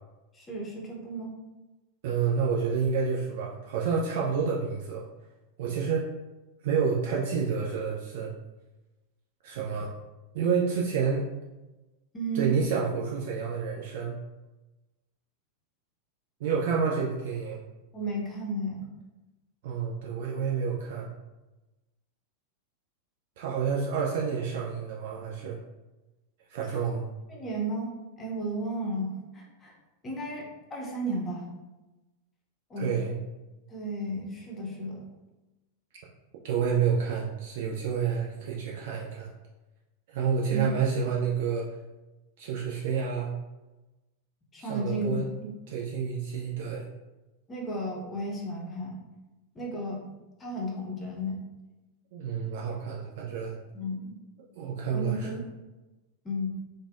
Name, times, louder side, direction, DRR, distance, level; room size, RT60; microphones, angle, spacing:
voice 1, 0.3-1.3 12.1-12.5 17.9-18.9 26.7-26.9 27.3-27.9 28.2-29.7 30.0-31.5 32.7-32.9 33.7-35.0 40.5-40.7 44.5-45.1 45.4-45.5 47.5-48.9 49.5-50.0 50.4-51.4 53.7-54.2 54.9-55.4 56.2-56.5, right 1 dB, 20° left, -2 dB, 0.7 m, -33 dB
voice 2, 2.0-5.1 5.6-6.1 6.6-8.3 9.4-9.9 10.3-11.3 12.3-14.1 16.4-17.6 19.6-21.1 23.4-25.6 26.5-27.0 32.8-33.2 36.4-39.3 40.1-41.7 42.4-43.3 44.6-45.3 45.7-46.8 52.1-53.6 54.6-55.3, right 6 dB, 55° right, -3 dB, 0.3 m, -29 dB
3.2 x 2.1 x 2.4 m, 1.1 s
figure-of-eight pair, 90°, 0 cm